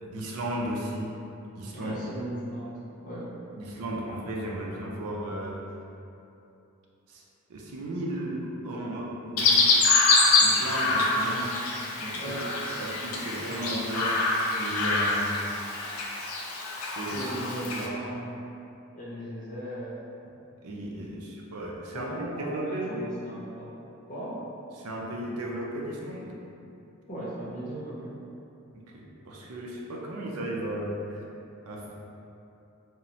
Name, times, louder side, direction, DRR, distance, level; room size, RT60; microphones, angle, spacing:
voice 1, 0.0-1.1 1.6-2.0 3.6-5.6 7.1-7.2 7.5-9.8 10.4-11.6 12.0-12.4 12.8-15.3 16.8-17.2 17.7-17.9 20.6-23.0 24.7-26.3 28.7-31.2 31.6-32.0, right 1 dB, 85° right, -2 dB, 0.4 m, -35 dB
voice 2, 1.7-3.5 12.2-12.5 17.1-18.3 18.9-20.0 21.9-23.7 24.1-24.3 27.1-28.1, right 1 dB, 35° left, -8 dB, 0.6 m, -37 dB
Chirp tweet, 9.4-17.9, left 3 dB, 75° left, 0.4 m, -25 dB
2.9 x 2.0 x 2.7 m, 2.8 s
head